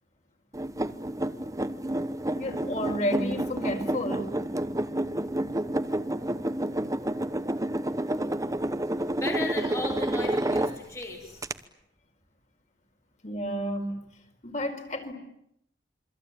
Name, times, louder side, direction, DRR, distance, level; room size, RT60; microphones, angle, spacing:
sound 1, 0.5-11.0 11.4-11.5, right 1 dB, 20° right, 1.0 m, -29 dB
voice 1, 2.4-4.3 13.2-14.1 14.4-15.1, equal, 40° left, 5 dB, 4.5 m, -31 dB
voice 2, 9.2-11.5, left 2 dB, 15° left, 1 dB, 3.1 m, -35 dB
27.5 x 24.5 x 8.8 m, 0.77 s
head